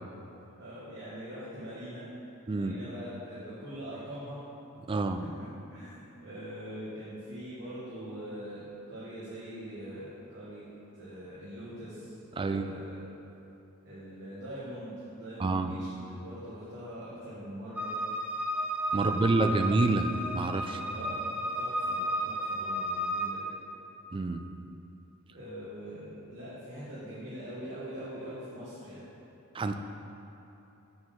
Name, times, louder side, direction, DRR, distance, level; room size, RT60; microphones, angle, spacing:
voice 1, 0.6-2.0 2.5-4.4 5.3-5.9 6.2-10.7 10.9-13.0 13.8-17.9 18.9-19.4 20.6-21.2 21.5-23.5 25.3-29.0, equal, 55° right, -11 dB, 1.6 m, -43 dB
voice 2, 4.9-5.2 12.3-12.8 15.4-15.7 18.9-20.8 24.1-24.5 29.5-29.7, right 3 dB, 25° right, 7 dB, 0.3 m, -28 dB
sound 1, 17.8-23.3, equal, 5° right, 0.7 m, -33 dB
6.8 x 4.6 x 6.5 m, 2.9 s
head